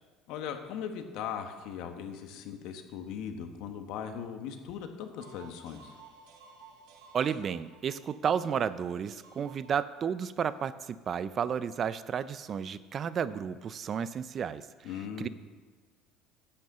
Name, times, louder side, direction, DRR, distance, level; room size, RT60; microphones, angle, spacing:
voice 1, 0.3-6.0 14.8-15.3, left 8 dB, 65° left, 6 dB, 1.3 m, -39 dB
sound 1, 5.2-10.3, right 4 dB, 75° right, 1.8 m, -55 dB
voice 2, 7.1-14.7 15.2-15.3, right 7 dB, 30° right, 15 dB, 0.4 m, -32 dB
10.0 x 6.5 x 7.7 m, 1.4 s
cardioid pair, 150°, 0 cm